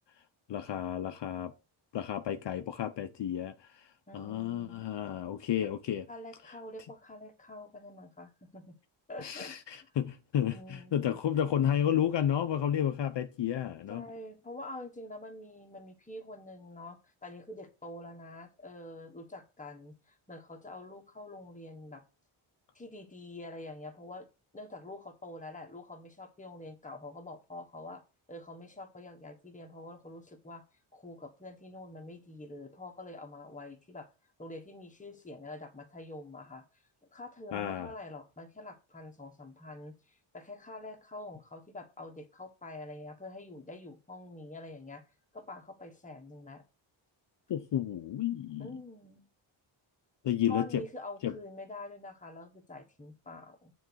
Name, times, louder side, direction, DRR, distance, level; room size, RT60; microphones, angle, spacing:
voice 1, 0.5-1.5 1.9-6.1 9.2-14.0 37.5-37.9 47.5-48.7 50.2-50.8 51.2-51.3, left 10 dB, 60° left, 0.7 m, -31 dB
voice 2, 4.1-4.8 6.1-8.7 9.1-9.9 10.5-11.2 13.9-22.0 22.7-24.3 24.5-28.0 28.3-30.6 30.9-34.1 34.4-36.6 37.1-45.0 45.3-46.6 48.6-49.3 50.5-53.7, left 2 dB, 15° left, 1.4 m, -46 dB
9.1 x 4.1 x 6.2 m
wide cardioid pair, 150°, 49 cm